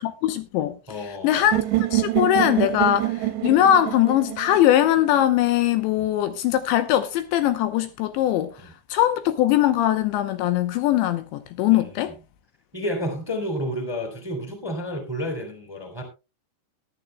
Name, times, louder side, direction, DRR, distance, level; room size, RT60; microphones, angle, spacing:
voice 1, 0.0-0.8 1.2-8.6 8.9-12.1, left 12 dB, 80° left, 2.9 m, -21 dB
voice 2, 0.9-1.5 6.0-6.1 8.6-8.7 11.7-12.1 12.7-16.0, equal, 10° right, 2.0 m, -31 dB
sound 1, 1.5-5.5, right 15 dB, 75° right, 2.7 m, -26 dB
19.5 x 11.0 x 2.2 m
omnidirectional pair, 5.5 m